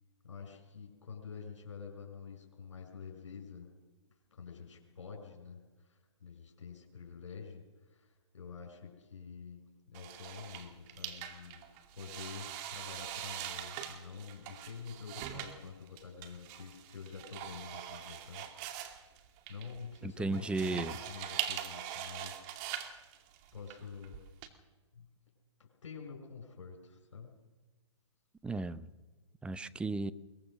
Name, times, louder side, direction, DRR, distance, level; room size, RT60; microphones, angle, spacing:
voice 1, 0.2-3.8 4.3-11.6 11.9-19.0 19.5-22.5 22.8-23.0 23.5-24.2 24.9-25.1 25.6-27.4, left 6 dB, 70° left, 2 dB, 5.6 m, -48 dB
sound 1, 9.9-24.5, right 11 dB, 35° right, 2.3 m, -43 dB
voice 2, 20.0-20.9 28.4-28.9 29.4-30.1, right 3 dB, 5° right, 13 dB, 0.6 m, -35 dB
22.5 x 21.5 x 6.4 m, 1.3 s
figure-of-eight pair, 125°, 16 cm